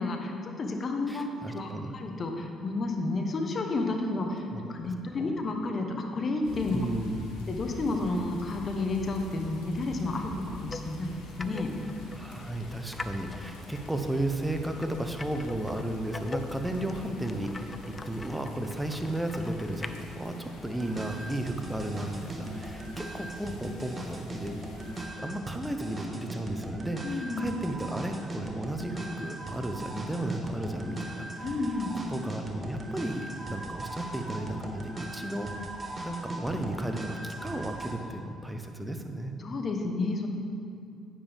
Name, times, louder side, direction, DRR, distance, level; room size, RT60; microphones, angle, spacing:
voice 1, 0.0-6.8 7.5-11.7 27.0-27.5 31.4-32.0 39.4-40.3, left 2 dB, 45° left, 3 dB, 1.2 m, -31 dB
voice 2, 1.1-1.9 4.5-5.4 6.7-7.3 12.1-24.6 25.2-31.6 32.1-35.5 36.0-39.3, right 1 dB, 10° right, 5 dB, 1.0 m, -34 dB
sound 1, 6.4-25.0, left 2 dB, 85° left, 1.6 m, -46 dB
sound 2, 10.5-21.0, left 3 dB, 25° left, 0.6 m, -44 dB
sound 3, 20.6-37.9, right 1 dB, 30° right, 1.5 m, -39 dB
9.9 x 9.3 x 3.6 m, 2.4 s
hypercardioid pair, 55°, 0 cm